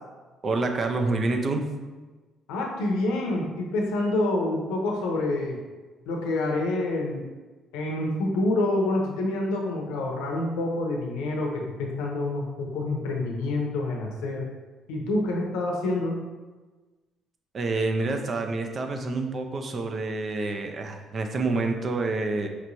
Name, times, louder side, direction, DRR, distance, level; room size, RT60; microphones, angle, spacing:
voice 1, 0.4-1.7 17.5-22.5, right 3 dB, 45° right, 5 dB, 0.5 m, -27 dB
voice 2, 2.5-5.6 6.1-7.2 7.7-14.5 14.9-16.2, left 2 dB, 90° left, 0 dB, 0.7 m, -27 dB
4.4 x 3.0 x 2.6 m, 1.3 s
supercardioid pair, 80°, 0 cm